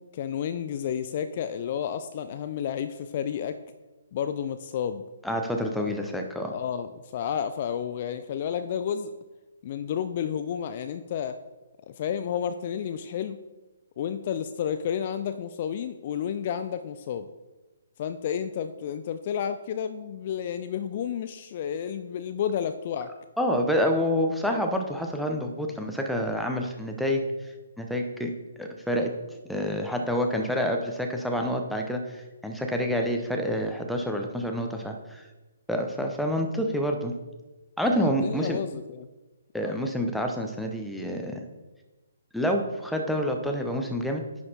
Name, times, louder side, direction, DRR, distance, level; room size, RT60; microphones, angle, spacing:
voice 1, 0.1-3.6 4.1-5.0 5.8-5.9 6.5-9.1 9.6-11.4 11.9-13.4 14.0-17.3 18.0-23.1 37.9-39.1 39.6-39.8, left 8 dB, 40° left, 11 dB, 0.3 m, -31 dB
voice 2, 5.2-6.5 23.4-27.2 27.8-28.3 28.6-29.1 29.5-35.2 35.7-37.1 37.8-38.6 39.5-41.4 42.3-44.2, equal, ahead, 2 dB, 0.7 m, -28 dB
10.0 x 4.2 x 4.2 m, 1.1 s
figure-of-eight pair, 135°, 0 cm